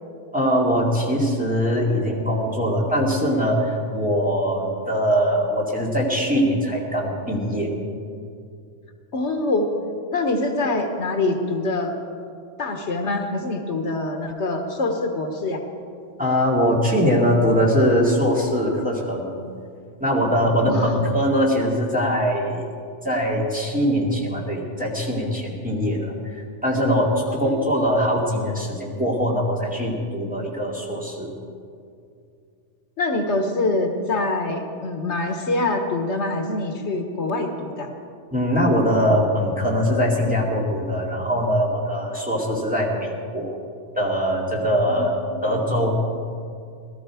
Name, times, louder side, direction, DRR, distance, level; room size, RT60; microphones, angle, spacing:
voice 1, 0.3-7.7 16.2-19.3 20.0-22.6 23.0-31.3 38.3-43.6 43.9-45.1 45.4-46.0, equal, 5° right, -4 dB, 2.4 m, -22 dB
voice 2, 9.1-9.7 10.1-11.9 12.6-15.6 20.7-21.0 27.3-27.7 33.0-37.9 44.9-45.0 45.3-45.5, left 2 dB, 80° left, 4 dB, 1.5 m, -25 dB
18.0 x 13.0 x 4.9 m, 2.4 s
omnidirectional pair, 1.2 m